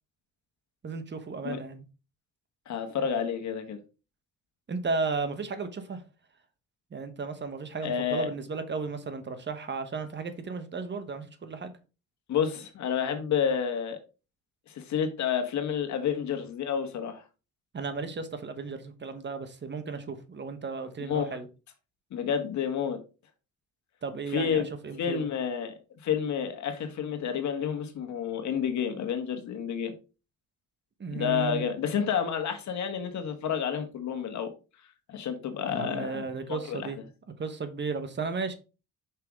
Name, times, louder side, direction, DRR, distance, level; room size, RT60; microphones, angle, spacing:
voice 1, 0.8-1.8 4.7-6.0 6.9-11.8 17.7-21.5 24.0-25.3 31.0-31.7 35.7-37.0 37.4-38.5, right 4 dB, 35° right, 1.2 m, -34 dB
voice 2, 2.7-3.8 7.8-8.3 12.3-14.0 14.7-17.2 21.1-21.3 22.1-23.0 24.3-24.7 25.0-25.7 26.0-29.9 31.1-34.5 35.1-36.2 36.5-36.9, left 7 dB, 70° left, 1.5 m, -29 dB
5.7 x 5.6 x 3.6 m
cardioid pair, 90°, 30 cm